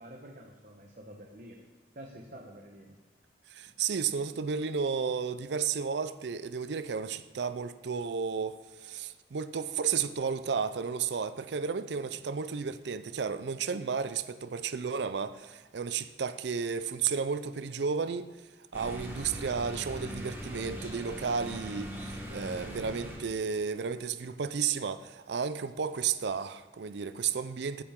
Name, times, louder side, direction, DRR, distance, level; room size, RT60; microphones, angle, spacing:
voice 1, 0.0-1.6 1.9-3.0 3.7-3.8 12.1-12.2, right 1 dB, 45° right, 1.1 m, -48 dB
voice 2, 3.5-18.3 18.7-27.8, right 6 dB, 70° right, 0.5 m, -33 dB
sound 1, 18.7-23.2, equal, 10° right, 1.6 m, -40 dB
15.0 x 8.8 x 3.7 m
head